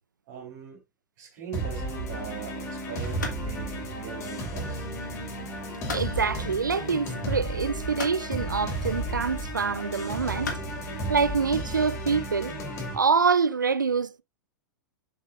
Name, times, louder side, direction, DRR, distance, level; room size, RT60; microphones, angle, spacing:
voice 1, 0.3-0.8 1.2-4.9, right 8 dB, 45° right, 3.3 m, -41 dB
sound 1, 1.5-13.0, right 1 dB, 30° left, 3.3 m, -33 dB
sound 2, 2.3-12.2, left 4 dB, 70° left, 2.3 m, -43 dB
voice 2, 5.9-10.5 11.1-12.5 12.9-14.2, right 5 dB, 80° right, 0.4 m, -26 dB
7.2 x 6.8 x 2.5 m
figure-of-eight pair, 100°, 10 cm